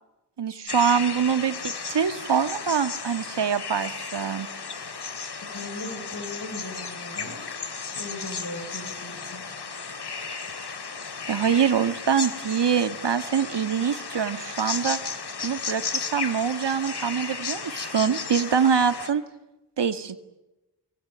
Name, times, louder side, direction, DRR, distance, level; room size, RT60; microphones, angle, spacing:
voice 1, 0.4-4.5 11.3-15.0 15.4-19.2 19.8-20.2, right 7 dB, 80° right, 10 dB, 1.9 m, -24 dB
sound 1, 0.7-19.1, left 5 dB, 70° left, 2.8 m, -34 dB
voice 2, 5.4-7.4 7.9-9.4, left 2 dB, 55° left, 5 dB, 6.7 m, -38 dB
26.0 x 23.5 x 8.9 m, 0.98 s
wide cardioid pair, 70°, 41 cm